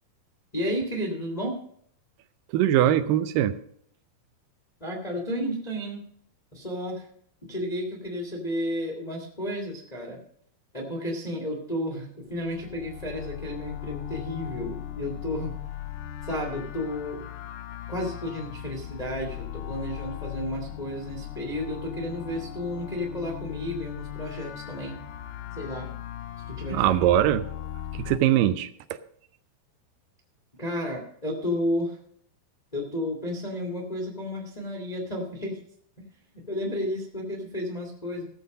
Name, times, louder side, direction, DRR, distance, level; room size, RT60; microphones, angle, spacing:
voice 1, 0.5-1.6 4.8-6.0 6.5-7.0 7.5-10.2 10.7-15.5 16.2-17.2 17.9-25.0 25.5-25.9 26.5-26.8 30.6-32.0 32.7-35.6 36.0-36.1 36.5-38.2, left 1 dB, 55° left, 0 dB, 0.4 m, -32 dB
voice 2, 2.5-3.6 26.7-27.5 27.9-29.0, right 12 dB, 80° right, 11 dB, 2.1 m, -22 dB
sound 1, 12.3-28.2, left 11 dB, 80° left, 1.8 m, -38 dB
16.0 x 6.9 x 5.2 m, 0.63 s
omnidirectional pair, 4.5 m